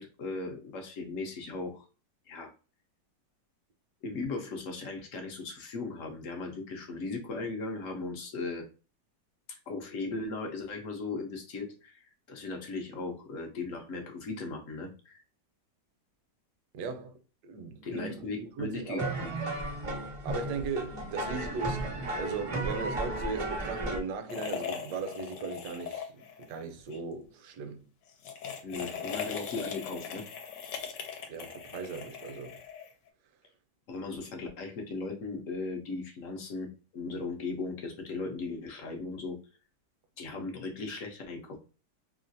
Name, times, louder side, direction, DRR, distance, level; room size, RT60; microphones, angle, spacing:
voice 1, 0.0-1.9 2.3-2.5 4.0-8.7 9.5-15.2 17.8-19.3 28.6-30.3 33.9-39.4 40.2-41.6, left 3 dB, 65° left, 0.8 m, -37 dB
voice 2, 16.7-17.2 17.4-19.2 20.2-26.1 26.5-27.9 28.9-29.1 31.3-32.6, right 4 dB, 75° right, 1.2 m, -37 dB
sound 1, 19.0-24.0, right 2 dB, 60° right, 0.3 m, -34 dB
sound 2, 24.3-26.5 26.8-27.0 28.1-33.1, left 7 dB, 80° left, 1.2 m, -39 dB
3.1 x 2.4 x 2.5 m
omnidirectional pair, 1.9 m